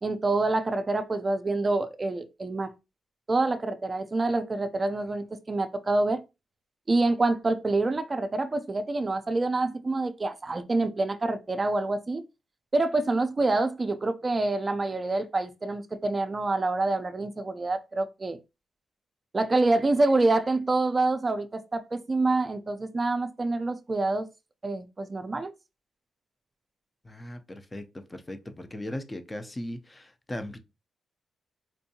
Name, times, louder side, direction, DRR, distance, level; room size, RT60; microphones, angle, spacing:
voice 1, 0.0-2.7 3.3-6.2 6.9-12.2 12.7-18.4 19.3-24.3 24.6-25.5, right 2 dB, 30° right, 0.5 m, -26 dB
voice 2, 27.0-30.6, left 1 dB, 20° left, 0.6 m, -38 dB
4.4 x 2.6 x 2.7 m
cardioid pair, 90°, 0 cm